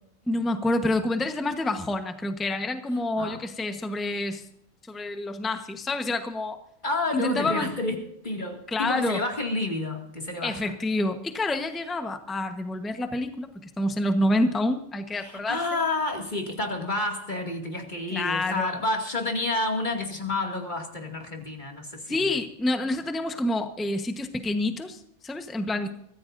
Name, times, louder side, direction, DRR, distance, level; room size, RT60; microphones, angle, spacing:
voice 1, 0.3-4.5 4.9-6.6 7.1-7.7 8.7-9.2 10.4-15.6 18.1-18.8 22.1-25.9, left 2 dB, ahead, 0.9 m, -28 dB
voice 2, 6.8-10.7 15.2-22.4, left 2 dB, 35° left, 2.4 m, -30 dB
24.0 x 15.0 x 2.6 m
omnidirectional pair, 1.4 m